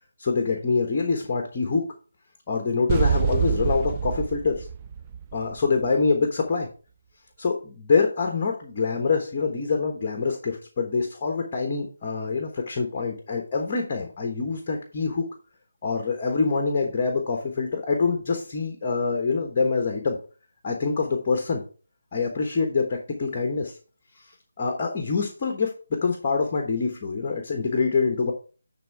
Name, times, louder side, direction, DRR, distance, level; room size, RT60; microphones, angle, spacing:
voice 1, 0.2-1.8 2.5-4.7 5.3-6.7 7.4-15.3 15.8-20.2 20.6-21.6 22.1-23.8 24.2-24.3 24.6-28.3, left 4 dB, 30° left, 4 dB, 1.2 m, -25 dB
sound 1, 2.9-5.9, right 7 dB, 25° right, 0.4 m, -26 dB
10.5 x 3.5 x 4.6 m, 0.38 s
figure-of-eight pair, 160°, 0 cm